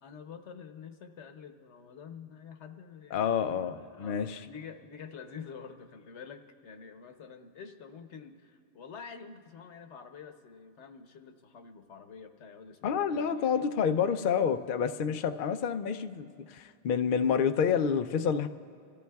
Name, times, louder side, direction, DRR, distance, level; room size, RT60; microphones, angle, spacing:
voice 1, 0.0-3.2 3.5-13.7, left 6 dB, 90° left, 7 dB, 1.1 m, -47 dB
voice 2, 3.1-4.4 12.8-18.5, left 7 dB, 60° left, 8 dB, 0.6 m, -28 dB
27.5 x 14.0 x 2.3 m, 2.5 s
omnidirectional pair, 1.1 m